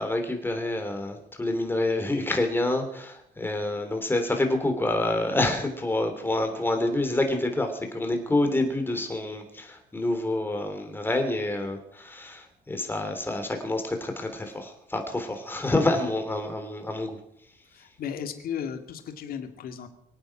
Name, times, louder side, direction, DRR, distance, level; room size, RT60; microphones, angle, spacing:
voice 1, 0.0-17.2, left 2 dB, 10° left, 5 dB, 3.3 m, -27 dB
voice 2, 17.7-19.9, left 8 dB, 60° left, 6 dB, 2.2 m, -35 dB
24.5 x 8.9 x 6.0 m, 0.75 s
cardioid pair, 110°, 17 cm